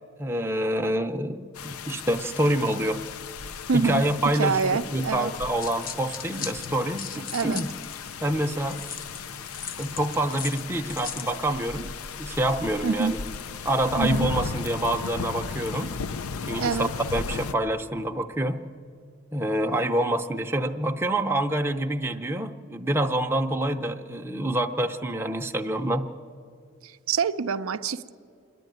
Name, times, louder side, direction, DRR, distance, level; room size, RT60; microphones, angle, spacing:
voice 1, 0.2-3.0 3.7-7.7 8.2-8.8 9.8-11.9 12.2-13.2 13.6-15.9 16.5-18.6 19.3-26.0, right 1 dB, 10° right, 4 dB, 0.6 m, -27 dB
sound 1, 1.5-17.5, left 5 dB, 85° left, 0.5 m, -36 dB
voice 2, 3.7-4.0 4.3-5.3 7.3-7.6 12.8-13.2 14.0-14.3 16.5-16.9 26.8-28.1, right 5 dB, 75° right, 10 dB, 0.5 m, -26 dB
sound 2, 5.3-8.1 8.7-11.4, left 7 dB, 40° left, 0.7 m, -38 dB
27.0 x 11.0 x 9.3 m, 2.2 s
head